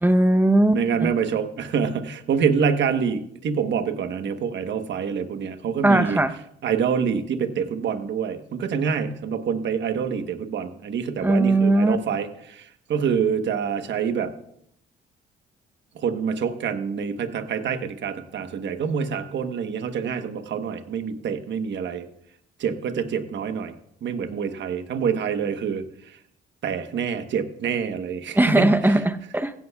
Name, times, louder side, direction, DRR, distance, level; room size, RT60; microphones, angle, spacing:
voice 1, 0.0-1.1 5.8-6.3 11.2-12.0 28.4-29.5, right 1 dB, 10° right, 10 dB, 0.8 m, -19 dB
voice 2, 0.7-6.2 6.6-14.3 15.9-22.1 22.6-23.8 24.0-26.2 26.6-29.0, right 6 dB, 65° right, 8 dB, 1.2 m, -26 dB
16.0 x 11.5 x 2.4 m, 0.72 s
cardioid pair, 90°, 20 cm